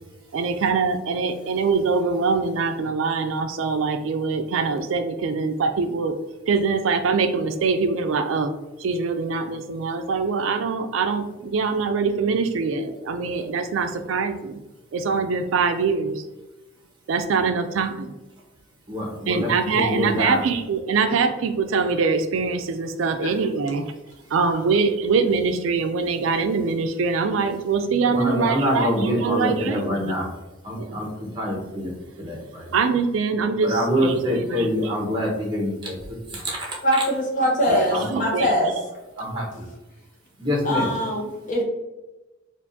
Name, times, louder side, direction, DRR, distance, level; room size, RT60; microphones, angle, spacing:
voice 1, 0.3-6.2 6.5-8.5 8.8-14.6 14.9-16.2 17.1-18.1 19.3-23.9 24.3-30.1 30.8-31.0 32.7-34.7 37.7-38.5, right 4 dB, 75° right, 7 dB, 0.4 m, -23 dB
voice 2, 18.9-20.4 28.1-30.3 30.6-31.1 31.3-31.9 32.2-32.8 33.6-36.0 36.3-37.0 37.7-38.2 39.2-39.6 40.4-40.9, equal, 25° right, -3 dB, 1.1 m, -25 dB
voice 3, 36.8-38.7 40.6-41.6, equal, 40° left, -1 dB, 0.9 m, -22 dB
4.5 x 2.5 x 2.6 m, 1.1 s
head